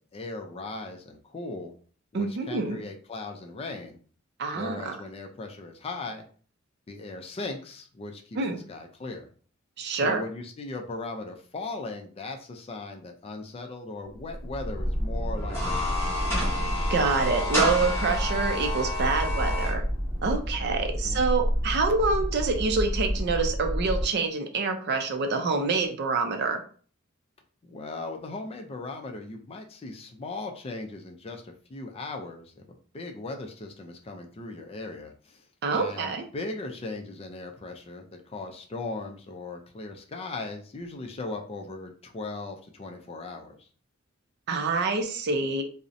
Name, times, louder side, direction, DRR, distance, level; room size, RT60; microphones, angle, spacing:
voice 1, 0.0-1.7 2.1-4.0 4.5-6.3 6.9-9.3 9.9-16.0 20.8-21.2 27.6-32.6 32.9-35.5 35.7-43.6, left 3 dB, 30° left, 4 dB, 0.4 m, -38 dB
voice 2, 2.1-2.8 4.4-5.0 8.4-8.6 9.8-10.2 16.9-19.8 20.2-26.6 35.6-36.2 44.5-45.6, right 4 dB, 55° right, 6 dB, 0.4 m, -26 dB
sound 1, 14.1-24.0, equal, 30° right, 0.9 m, -30 dB
sound 2, 15.4-19.7, left 1 dB, 10° left, 0.9 m, -30 dB
2.6 x 2.0 x 2.5 m, 0.43 s
head